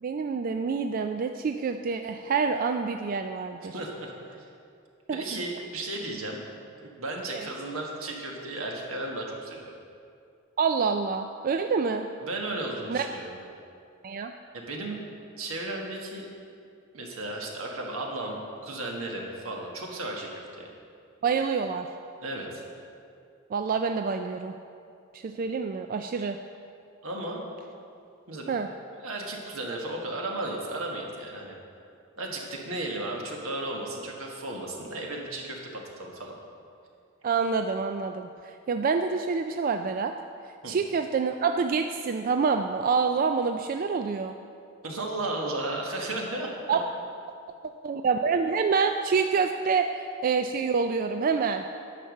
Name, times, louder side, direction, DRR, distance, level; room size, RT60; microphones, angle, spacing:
voice 1, 0.0-3.7 5.1-5.4 7.3-7.5 10.6-12.1 12.9-13.1 14.0-14.3 21.2-21.9 23.5-24.6 25.1-26.4 28.5-28.7 37.2-38.3 38.7-40.1 40.7-44.3 46.7-46.8 47.8-49.9 50.2-51.6, right 5 dB, 40° right, 6 dB, 0.3 m, -27 dB
voice 2, 3.7-4.5 5.1-6.5 6.8-9.7 12.2-13.5 14.5-15.0 15.4-16.3 16.9-20.7 22.2-22.6 27.0-27.4 28.3-28.6 29.0-31.6 32.2-36.4 40.6-40.7 44.8-46.8 48.3-48.4, right 2 dB, 80° right, 0 dB, 1.6 m, -34 dB
10.0 x 5.8 x 6.4 m, 2.5 s
head